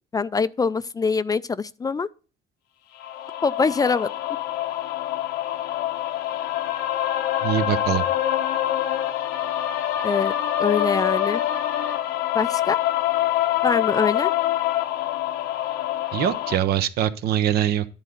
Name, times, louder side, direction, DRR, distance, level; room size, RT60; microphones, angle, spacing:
voice 1, 0.1-2.1 3.4-4.1 10.0-10.3 10.6-11.4 12.3-12.8 13.6-14.3, left 5 dB, 20° left, 0.3 m, -23 dB
sound 1, 3.0-16.6, left 12 dB, 85° left, 0.9 m, -25 dB
voice 2, 7.4-8.1 16.1-17.9, right 11 dB, 70° right, 0.8 m, -23 dB
10.5 x 4.0 x 6.6 m
cardioid pair, 110°, 17 cm